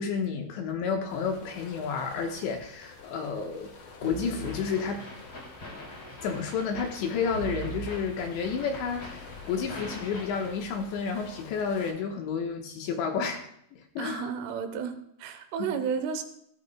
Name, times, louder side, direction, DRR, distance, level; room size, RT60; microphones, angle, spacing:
voice 1, 0.0-3.7 4.0-5.0 6.2-13.4 13.7-14.3 15.7-15.8, left 6 dB, 75° left, 3 dB, 3.0 m, -31 dB
sound 1, 1.1-11.9, left 4 dB, 55° left, 2.7 m, -49 dB
sound 2, 4.0-5.6 7.3-9.1, right 7 dB, 45° right, 2.5 m, -41 dB
sound 3, 4.4-10.5, left 1 dB, 35° left, 3.0 m, -44 dB
voice 2, 14.0-16.2, right 6 dB, 80° right, 7 dB, 3.4 m, -32 dB
17.5 x 14.0 x 2.2 m, 0.72 s
omnidirectional pair, 5.8 m